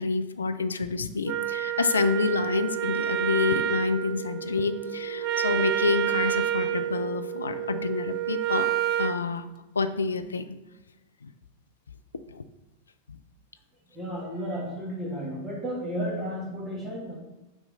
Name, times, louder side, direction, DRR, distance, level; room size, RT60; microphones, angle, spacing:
voice 1, 0.0-8.7 9.0-9.4 9.8-10.5 11.2-11.3 12.3-12.4, left 4 dB, 75° left, 9 dB, 0.4 m, -28 dB
Wind instrument woodwind instrument, 1.2-9.2, right 12 dB, 40° right, 0.3 m, -29 dB
Telephone, 2.8-7.8, left 1 dB, 75° right, 0.7 m, -41 dB
voice 2, 13.9-17.2, equal, 15° right, -4 dB, 1.7 m, -33 dB
6.4 x 3.1 x 5.2 m, 1.0 s
figure-of-eight pair, 90°, 0 cm